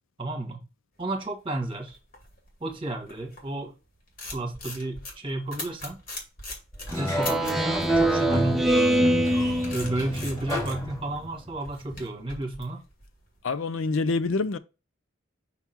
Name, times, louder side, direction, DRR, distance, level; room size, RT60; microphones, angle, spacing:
voice 1, 0.2-0.6 1.0-2.0 2.6-3.7 4.3-6.0 6.9-8.7 9.7-12.8, right 2 dB, 25° right, 1.5 m, -32 dB
sound 1, 1.3-3.6 3.9-7.7 8.9-13.4, left 2 dB, 45° left, 2.5 m, -41 dB
Sliding door, 6.8-11.5, equal, 20° left, 2.0 m, -34 dB
Speech synthesizer, 6.9-10.4, right 1 dB, ahead, 0.7 m, -24 dB
voice 2, 13.4-14.6, left 3 dB, 75° left, 0.5 m, -26 dB
5.8 x 3.7 x 4.4 m
head